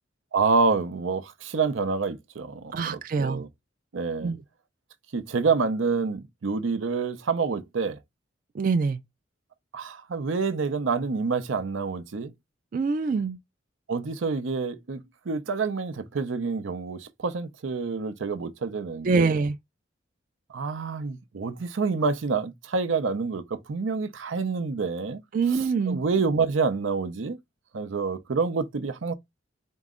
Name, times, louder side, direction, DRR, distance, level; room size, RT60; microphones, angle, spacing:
voice 1, 0.3-3.5 3.9-4.3 5.1-8.0 9.7-12.3 13.9-19.4 20.5-25.2 25.5-27.4 27.7-29.1, right 4 dB, 85° right, 0.6 m, -27 dB
voice 2, 2.7-3.4 4.2-4.4 8.5-9.0 12.7-13.4 19.0-19.6 25.3-26.0, right 4 dB, 45° right, 0.3 m, -24 dB
4.5 x 2.0 x 3.6 m
head